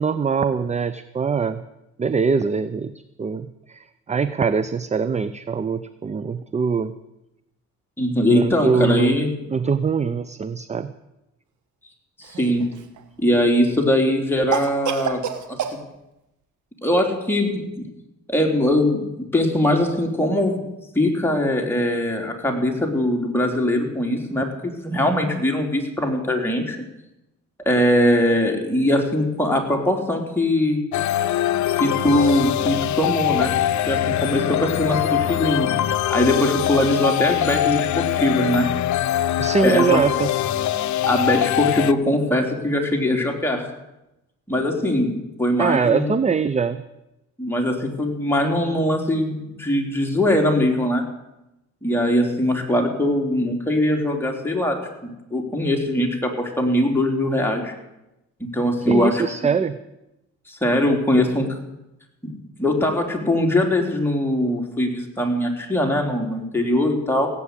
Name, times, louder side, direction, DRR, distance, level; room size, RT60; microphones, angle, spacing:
voice 1, 0.0-1.6 2.0-2.9 3.2-7.0 8.3-9.2 9.5-10.9 24.4-24.5 39.4-40.3 45.6-46.8 58.9-59.8, right 5 dB, 25° right, 14 dB, 0.6 m, -23 dB
voice 2, 8.0-9.3 12.2-12.6 13.2-15.2 15.5-15.6 16.8-17.8 18.3-19.0 19.3-20.7 20.9-26.8 27.6-30.8 31.8-33.5 33.9-35.7 36.1-38.7 39.5-40.0 41.1-43.7 44.5-46.1 47.4-51.0 51.8-57.7 58.4-59.2 60.5-61.5 62.2-67.3, left 1 dB, 5° left, 1 dB, 3.4 m, -21 dB
Cough, 12.2-13.0 14.5-15.8, right 8 dB, 75° right, 1.6 m, -27 dB
sound 1, 30.9-41.9, left 12 dB, 70° left, 0.7 m, -23 dB
17.0 x 8.7 x 8.2 m, 0.92 s
cardioid pair, 90°, 30 cm